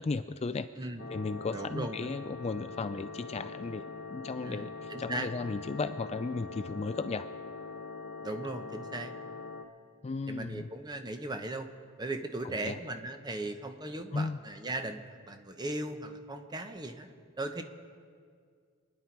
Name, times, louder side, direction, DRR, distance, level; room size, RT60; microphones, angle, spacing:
voice 1, 0.0-0.7 1.1-3.8 4.1-7.3 10.0-10.7 12.6-12.8 14.1-14.4, left 4 dB, 30° left, 11 dB, 0.3 m, -35 dB
sound 1, 1.0-9.6, left 4 dB, 55° left, 1.1 m, -43 dB
voice 2, 1.5-2.1 4.4-5.3 8.2-9.1 10.3-11.7 12.0-17.1 17.4-17.6, right 2 dB, 20° right, 7 dB, 0.9 m, -38 dB
27.0 x 10.5 x 4.6 m, 2.1 s
head